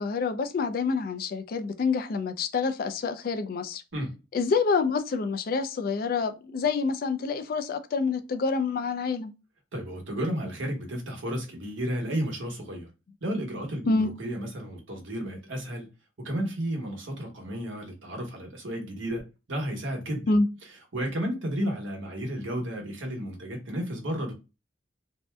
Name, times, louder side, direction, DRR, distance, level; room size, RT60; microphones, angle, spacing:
voice 1, 0.0-3.8 4.3-9.3 13.9-14.1 20.3-20.5, left 4 dB, 45° left, 0.3 m, -27 dB
voice 2, 9.7-12.9 13.2-15.9 16.2-20.4 20.9-24.3, equal, 80° right, 1.1 m, -32 dB
2.7 x 2.1 x 3.3 m
head